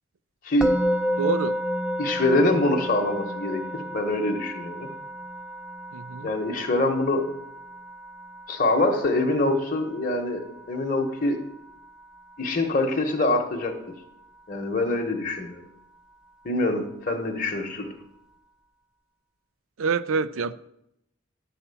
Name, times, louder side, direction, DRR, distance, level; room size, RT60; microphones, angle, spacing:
Musical instrument, 0.6-11.7, equal, 5° right, 0.4 m, -32 dB
voice 1, 1.2-1.6 5.9-6.3 19.8-20.5, right 5 dB, 90° right, 0.4 m, -26 dB
voice 2, 2.0-4.9 6.2-7.2 8.5-11.4 12.4-13.7 14.5-15.6 16.4-17.9, left 2 dB, 40° left, 1.0 m, -24 dB
11.0 x 4.2 x 6.9 m
head